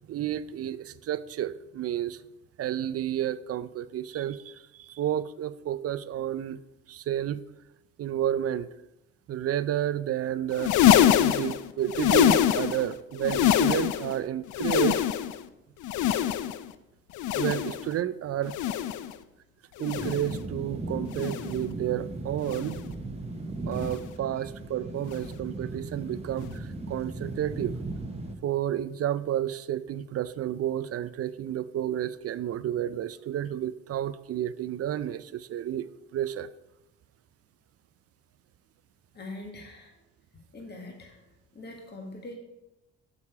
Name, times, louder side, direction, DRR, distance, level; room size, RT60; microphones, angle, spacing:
voice 1, 0.1-2.2 2.6-6.6 6.9-7.4 8.0-8.7 9.3-10.7 11.2-15.0 17.3-18.6 19.8-22.8 23.7-27.8 28.4-36.5, right 11 dB, 50° right, 16 dB, 0.4 m, -31 dB
sound 1, 10.5-12.9 13.2-14.2 14.5-15.4 15.8-16.7 17.1-17.9 18.4-19.1 19.8-20.4 21.1-21.6 22.4-22.9 23.8-24.1 25.1-25.3 26.4-26.5, left 10 dB, 75° left, 0.5 m, -25 dB
sound 2, 19.9-28.3, right 2 dB, 20° right, 1.0 m, -37 dB
voice 2, 39.1-40.0 40.5-41.2 41.5-42.4, left 2 dB, 35° left, 1 dB, 1.6 m, -43 dB
7.3 x 6.7 x 4.7 m, 0.93 s
cardioid pair, 90°, 30 cm